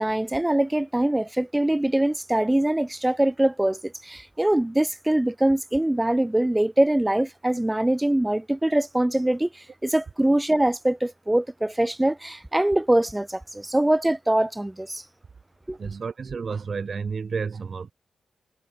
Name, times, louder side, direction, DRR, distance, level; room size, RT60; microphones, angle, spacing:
voice 1, 0.0-15.0 15.7-15.8, right 1 dB, 10° right, 1.1 m, -23 dB
voice 2, 15.8-17.9, right 5 dB, 50° right, 5.5 m, -31 dB
cardioid pair, 90°, 0 cm